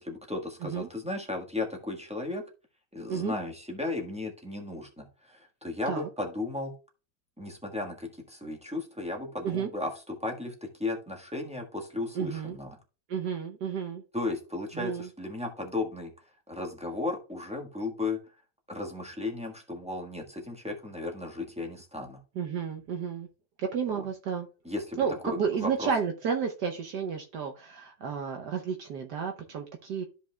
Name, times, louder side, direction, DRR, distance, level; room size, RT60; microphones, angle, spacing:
voice 1, 0.0-2.4 2.9-6.7 7.4-10.5 10.8-12.8 14.1-16.1 16.5-18.2 18.7-22.2 24.0-24.1 24.6-25.9, left 2 dB, 5° right, 1 dB, 1.1 m, -35 dB
voice 2, 12.1-12.6 13.1-14.0 14.7-15.1 22.4-23.3 23.7-24.5 25.0-30.0, right 6 dB, 65° right, 3 dB, 1.3 m, -32 dB
13.0 x 5.3 x 2.3 m, 0.33 s
omnidirectional pair, 2.0 m